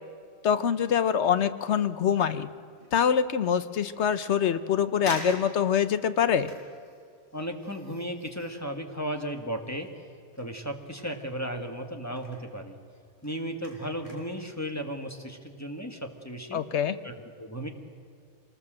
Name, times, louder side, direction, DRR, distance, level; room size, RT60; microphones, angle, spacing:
voice 1, 0.4-2.5 2.9-6.5 16.5-17.0, left 8 dB, 75° left, 13 dB, 1.1 m, -25 dB
sound 1, 2.7-3.1 3.6-3.7 4.5-4.6 5.0-10.0 10.3-11.8 12.1-12.5 12.9-14.5 14.9-15.0, equal, 45° left, 4.5 m, -46 dB
voice 2, 7.3-9.9 10.4-12.8 13.2-16.6 17.0-17.1 17.4-17.7, equal, 15° left, 4 dB, 1.8 m, -35 dB
25.5 x 19.5 x 7.6 m, 2.3 s
omnidirectional pair, 1.2 m